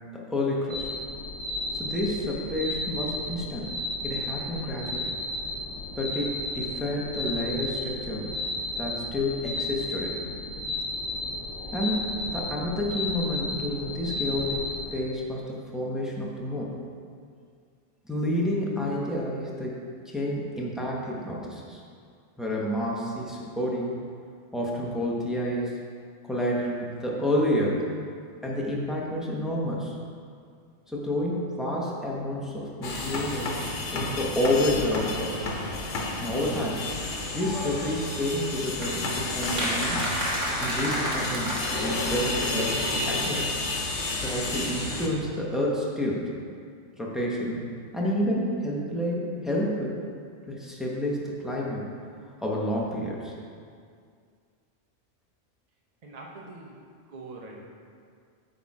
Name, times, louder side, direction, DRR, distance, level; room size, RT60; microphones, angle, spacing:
voice 1, 0.3-0.9 1.7-3.7 4.0-5.1 6.0-8.3 8.8-10.1 11.7-14.6 14.9-16.7 18.1-19.8 20.0-21.8 22.4-24.0 24.5-25.7 26.3-27.8 28.4-29.9 30.9-33.5 33.9-35.3 36.2-36.9 37.3-40.0 40.6-43.5 44.2-46.2 47.0-47.7 47.9-50.0 50.5-51.8 52.4-53.3, left 1 dB, ahead, -4 dB, 0.9 m, -29 dB
sound 1, 0.7-14.9, left 2 dB, 50° left, 1.6 m, -33 dB
sound 2, 32.8-45.1, left 2 dB, 75° left, 1.2 m, -31 dB
sound 3, 38.8-42.5 42.8-42.9 43.1-43.2 43.4-43.5, equal, 90° right, 1.8 m, -30 dB
voice 2, 56.0-56.8 57.1-57.6, right 3 dB, 40° right, -2 dB, 0.8 m, -43 dB
8.2 x 4.0 x 4.8 m, 2.2 s
omnidirectional pair, 1.2 m